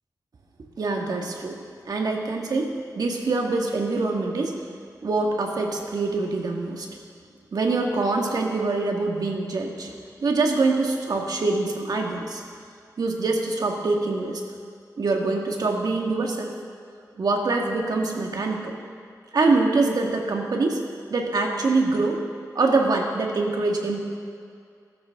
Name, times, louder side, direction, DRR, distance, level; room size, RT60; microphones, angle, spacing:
voice 1, 0.8-1.6 1.9-2.7 3.0-4.5 5.0-6.9 7.5-10.0 10.2-12.4 13.0-14.4 15.0-16.5 17.2-18.8 19.3-20.8 21.1-22.2 22.6-24.1, right 3 dB, 70° right, 1 dB, 1.9 m, -24 dB
21.0 x 12.5 x 3.8 m, 2.3 s
wide cardioid pair, 135°, 7 cm